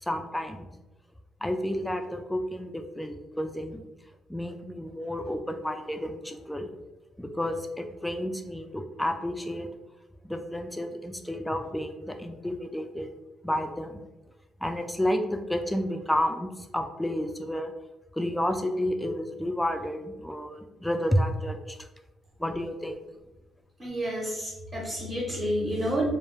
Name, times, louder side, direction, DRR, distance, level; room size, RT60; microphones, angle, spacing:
voice 1, 0.0-0.7 1.4-3.8 4.3-6.7 7.2-9.7 10.2-13.1 13.4-14.0 14.6-17.7 18.1-21.9 22.4-23.0, equal, 5° left, 6 dB, 0.3 m, -31 dB
voice 2, 23.8-26.1, equal, 30° right, -4 dB, 0.7 m, -29 dB
2.2 x 2.1 x 3.1 m, 1.0 s
cardioid pair, 90°, 0 cm